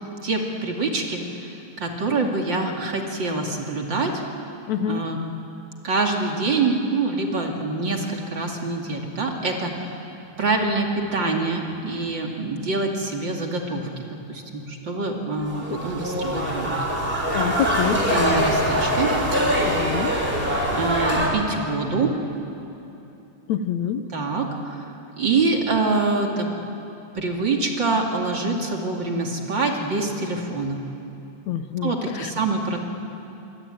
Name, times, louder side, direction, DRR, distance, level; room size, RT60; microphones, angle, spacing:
voice 1, 0.2-4.2 4.8-5.2 5.8-10.0 10.4-16.7 17.9-19.1 20.7-22.1 24.1-26.5 27.1-30.8 31.8-32.8, right 3 dB, 40° right, 1 dB, 2.8 m, -25 dB
voice 2, 4.7-5.0 17.3-18.0 19.7-20.1 23.5-24.0 31.5-31.9 32.2-32.3, left 9 dB, 70° left, 9 dB, 2.2 m, -26 dB
sound 1, 15.3-21.3, equal, 15° right, 4.2 m, -23 dB
25.5 x 24.0 x 9.0 m, 2.9 s
omnidirectional pair, 3.5 m